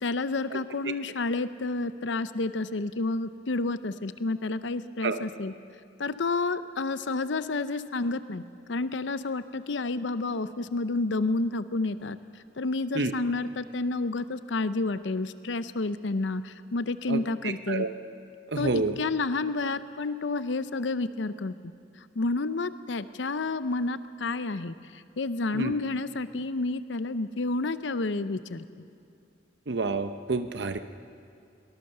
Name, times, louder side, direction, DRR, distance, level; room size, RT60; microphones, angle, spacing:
voice 1, 0.0-5.5 6.0-8.4 8.7-17.9 18.6-21.7 22.0-28.6, left 3 dB, 85° left, 13 dB, 0.7 m, -30 dB
voice 2, 17.1-17.9 18.5-19.0 25.5-25.7 29.7-30.8, right 3 dB, 70° right, 9 dB, 0.8 m, -29 dB
23.0 x 19.5 x 6.7 m, 2.6 s
head